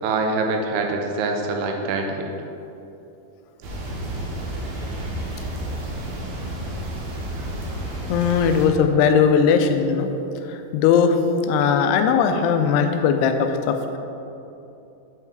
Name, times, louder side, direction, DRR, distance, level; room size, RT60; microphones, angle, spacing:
voice 1, 0.0-2.3, right 3 dB, 85° right, 3 dB, 2.7 m, -24 dB
sound 1, 3.6-8.7, right 1 dB, 65° right, 1.9 m, -30 dB
voice 2, 8.1-10.1 10.5-11.2 11.5-13.8, left 6 dB, 90° left, 6 dB, 2.6 m, -19 dB
7.7 x 5.7 x 4.7 m, 2.8 s
omnidirectional pair, 4.6 m